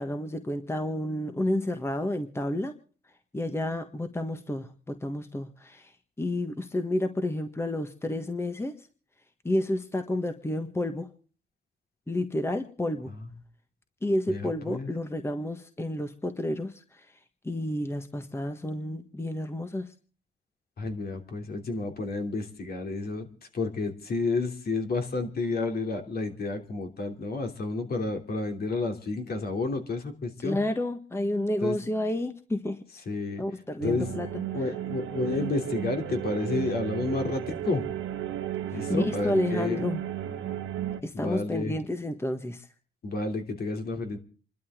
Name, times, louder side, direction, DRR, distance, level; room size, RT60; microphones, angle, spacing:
voice 1, 0.0-2.7 3.3-5.9 6.2-8.8 9.4-11.1 12.1-13.1 14.0-17.1 17.4-19.9 30.4-32.8 33.4-34.4 38.9-40.0 41.0-42.7, left 1 dB, 10° left, 8 dB, 1.5 m, -30 dB
voice 2, 14.3-14.9 20.8-23.3 23.5-30.6 31.6-31.8 33.1-33.4 33.8-34.1 34.5-37.9 38.7-39.8 41.1-41.7 43.0-44.2, left 3 dB, 50° left, 5 dB, 3.1 m, -30 dB
sound 1, 33.8-41.0, right 11 dB, 80° right, 1.6 m, -34 dB
27.5 x 12.0 x 3.8 m, 0.40 s
cardioid pair, 90°, 20 cm